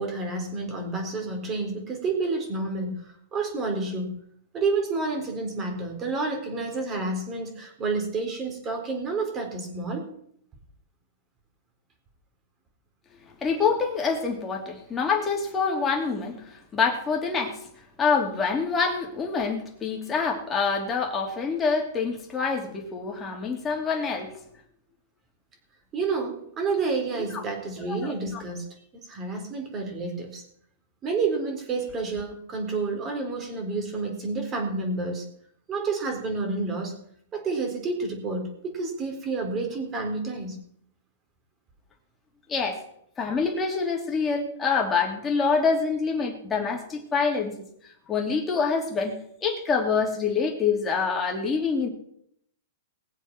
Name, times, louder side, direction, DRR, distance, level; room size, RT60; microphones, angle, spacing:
voice 1, 0.0-4.2 4.5-10.1 25.9-28.7 28.9-30.4 31.0-35.2 35.7-37.0 37.3-40.6, right 3 dB, 20° right, 3 dB, 3.9 m, -29 dB
voice 2, 13.4-17.6 18.0-24.3 27.2-27.4 27.9-28.4 42.5-42.8 43.2-47.5 48.1-49.2 49.4-51.9, left 5 dB, 15° left, 1 dB, 3.0 m, -26 dB
20.0 x 7.4 x 6.1 m, 0.69 s
hypercardioid pair, 155°, 0 cm